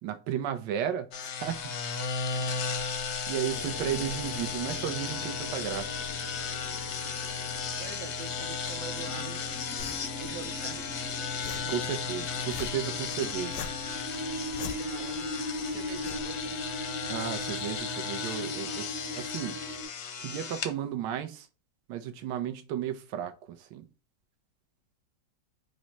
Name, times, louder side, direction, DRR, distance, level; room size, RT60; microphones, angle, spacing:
voice 1, 0.0-1.7 2.1-2.6 3.3-6.0 11.7-13.6 17.1-19.6 20.2-21.5 21.9-23.9, right 10 dB, 85° right, 1.3 m, -34 dB
sound 1, 1.1-20.7, left 5 dB, 65° left, 0.7 m, -35 dB
voice 2, 2.3-2.7 7.8-9.4 10.2-11.0 11.6-11.8 14.6-16.6, right 7 dB, 60° right, 0.9 m, -45 dB
sound 2, 3.5-19.8, left 1 dB, 15° left, 0.4 m, -40 dB
sound 3, 9.8-17.8, left 7 dB, 90° left, 1.3 m, -46 dB
5.1 x 2.1 x 4.3 m
omnidirectional pair, 1.9 m